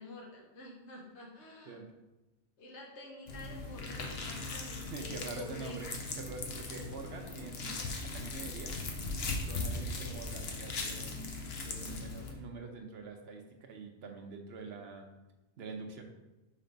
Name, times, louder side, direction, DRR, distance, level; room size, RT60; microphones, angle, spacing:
voice 1, 0.0-1.8 2.6-5.8 9.9-10.2 11.8-12.1, left 2 dB, 90° left, -1 dB, 1.3 m, -49 dB
sound 1, 3.3-12.3, left 3 dB, 65° left, 1.1 m, -39 dB
voice 2, 4.9-7.8 8.0-8.7 9.4-15.1 15.6-16.0, right 4 dB, 70° right, 3 dB, 1.0 m, -45 dB
5.6 x 3.4 x 5.1 m, 1.0 s
omnidirectional pair, 1.1 m